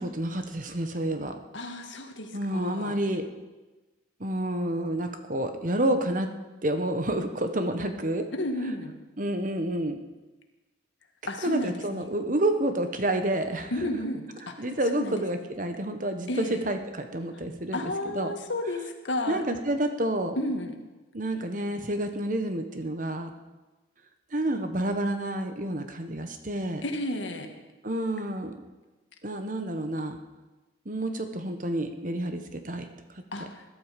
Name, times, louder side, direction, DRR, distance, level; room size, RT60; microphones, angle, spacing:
voice 1, 0.0-1.4 2.3-3.3 4.2-6.3 6.6-8.3 9.2-10.0 11.4-13.7 14.6-18.3 19.3-20.4 21.1-23.3 24.3-26.8 27.8-28.5 29.2-30.2 30.8-32.9, right 1 dB, 45° right, 7 dB, 1.2 m, -29 dB
voice 2, 1.5-2.9 8.3-9.0 11.3-12.1 13.7-15.5 16.3-16.6 17.7-19.4 20.4-20.8 26.8-27.5 33.3-33.6, left 1 dB, 75° left, 5 dB, 1.9 m, -32 dB
21.0 x 12.0 x 5.2 m, 1.2 s
head